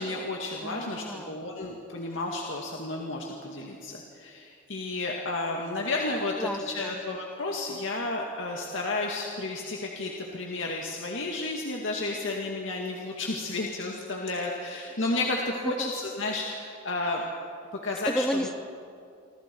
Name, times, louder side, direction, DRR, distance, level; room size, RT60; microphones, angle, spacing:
voice 1, 0.0-17.2 17.7-18.3, left 2 dB, 75° left, -1 dB, 2.1 m, -32 dB
voice 2, 0.6-1.4 6.4-7.0 15.6-15.9 18.1-18.6, equal, 5° left, 9 dB, 0.8 m, -32 dB
28.0 x 25.5 x 4.6 m, 2.5 s
head